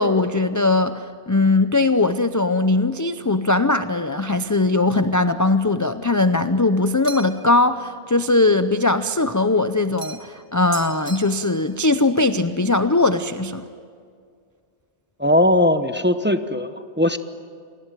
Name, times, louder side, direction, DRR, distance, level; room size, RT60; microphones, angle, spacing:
voice 1, 0.0-13.6, left 2 dB, 20° left, 10 dB, 0.6 m, -20 dB
sound 1, 7.0-7.5 10.0-10.4 10.7-11.7, right 5 dB, 60° right, 1.7 m, -37 dB
voice 2, 15.2-17.2, left 1 dB, 10° right, 9 dB, 0.8 m, -19 dB
28.5 x 20.0 x 9.1 m, 2.2 s
omnidirectional pair, 1.1 m